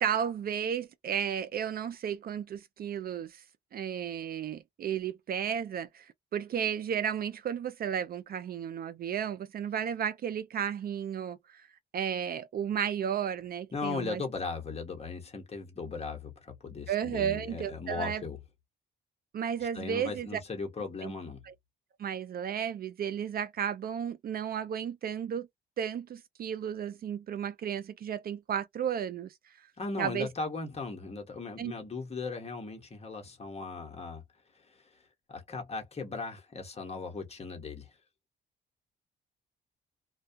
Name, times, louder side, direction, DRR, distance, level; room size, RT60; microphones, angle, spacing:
voice 1, 0.0-3.4 3.7-11.7 11.9-14.2 16.9-18.2 19.3-20.4 21.0-21.1 21.4-21.5 22.0-25.5 25.8-29.7 30.0-30.3 31.6-31.7, right 8 dB, 50° right, 0.4 m, -33 dB
voice 2, 13.7-18.4 19.7-21.4 29.8-34.2 34.5-35.0 35.3-37.9, left 4 dB, 30° left, 1.1 m, -38 dB
2.2 x 2.2 x 2.7 m
cardioid pair, 90°, 20 cm